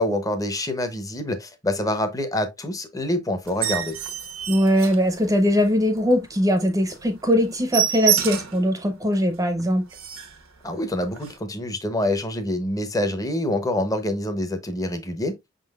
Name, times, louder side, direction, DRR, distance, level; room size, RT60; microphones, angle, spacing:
voice 1, 0.0-3.9 10.6-15.3, left 1 dB, 15° left, 0.7 m, -26 dB
sound 1, 3.4-5.6 6.0-6.2 6.5-6.6 6.9-7.1 7.3-8.7 9.1-9.2 9.6-9.7 9.9-10.4 11.2-11.3, right 10 dB, 85° right, 0.9 m, -27 dB
voice 2, 4.5-9.8, equal, 15° right, 0.6 m, -21 dB
5.8 x 3.8 x 2.3 m
head